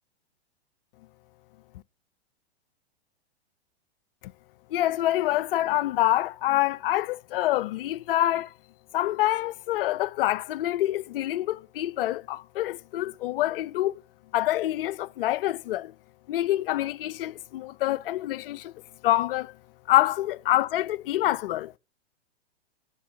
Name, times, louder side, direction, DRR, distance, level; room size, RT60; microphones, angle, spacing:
voice 1, 4.7-8.5 8.9-14.0 14.3-15.9 16.3-18.7 19.0-19.5 19.9-21.7, left 14 dB, 55° left, 0.6 m, -26 dB
10.0 x 5.3 x 7.9 m
hypercardioid pair, 110°, 33 cm